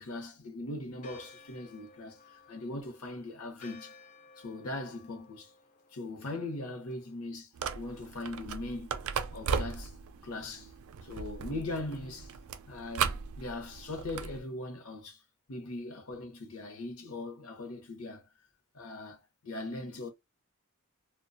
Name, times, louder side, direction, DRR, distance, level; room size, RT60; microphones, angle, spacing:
voice 1, 0.0-3.9 4.4-5.5 5.9-9.0 9.3-10.0 10.2-10.7 11.0-12.3 12.7-15.2 15.5-18.3 18.7-20.1, left 2 dB, 75° left, 0.7 m, -40 dB
Church bell, 1.0-7.3, left 4 dB, 35° left, 0.4 m, -57 dB
sound 1, 7.5-14.4, right 6 dB, 65° right, 0.3 m, -37 dB
2.4 x 2.1 x 2.5 m
head